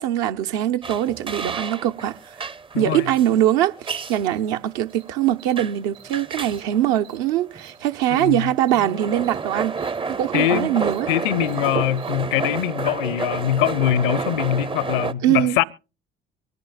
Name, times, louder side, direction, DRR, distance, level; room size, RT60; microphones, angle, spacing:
voice 1, 0.0-2.4 2.8-9.7 10.2-11.1 15.2-15.6, right 12 dB, 65° right, 0.9 m, -22 dB
sound 1, 0.8-15.1, right 5 dB, 20° right, 0.6 m, -30 dB
voice 2, 2.7-3.1 8.1-8.5 10.3-10.7 11.1-15.6, left 13 dB, 65° left, 0.7 m, -23 dB
Cricket, 4.3-4.4 4.9-5.0 5.4-5.5 5.9-6.1 6.4-6.6 7.0-7.2 7.6-7.7 8.1-8.3 8.6-8.8 9.2-9.4 9.7-9.9 10.3-10.5 10.8-11.0 11.4-11.6 11.9-12.1, right 10 dB, 85° right, 4.0 m, -49 dB
24.0 x 11.0 x 2.2 m
figure-of-eight pair, 50°, 29 cm